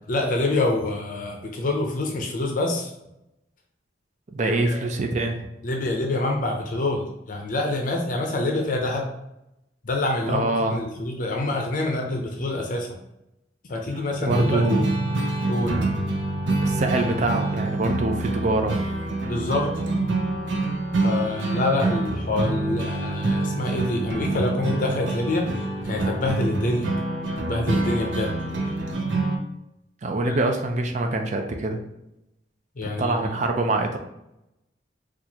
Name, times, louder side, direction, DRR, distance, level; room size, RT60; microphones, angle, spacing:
voice 1, 0.1-2.9 4.4-4.8 5.6-9.1 9.8-12.9 13.7-14.8 15.5-15.8 19.3-19.8 21.0-26.9 27.4-28.4 30.2-30.4 32.8-33.4, left 2 dB, 45° left, 2 dB, 0.6 m, -26 dB
voice 2, 4.3-5.5 10.3-10.8 14.3-14.9 16.6-18.8 30.0-31.8 32.8-34.0, right 2 dB, 40° right, 4 dB, 0.5 m, -25 dB
sound 1, 14.3-29.4, right 2 dB, 85° right, 0.6 m, -26 dB
4.4 x 2.4 x 2.8 m, 0.88 s
head